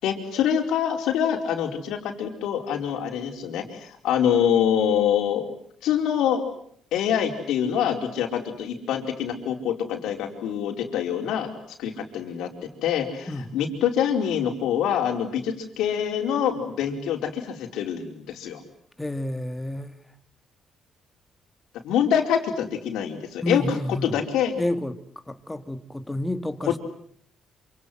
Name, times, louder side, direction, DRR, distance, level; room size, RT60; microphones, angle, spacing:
voice 1, 0.0-5.4 5.8-6.4 6.9-11.5 11.8-18.6 21.8-23.8 24.0-24.5 26.6-26.8, left 9 dB, 85° left, 4.7 m, -25 dB
voice 2, 19.0-19.9 23.4-24.1 24.6-25.0 25.3-26.8, left 1 dB, 10° left, 2.2 m, -29 dB
27.5 x 26.5 x 8.0 m
cardioid pair, 90°, 0 cm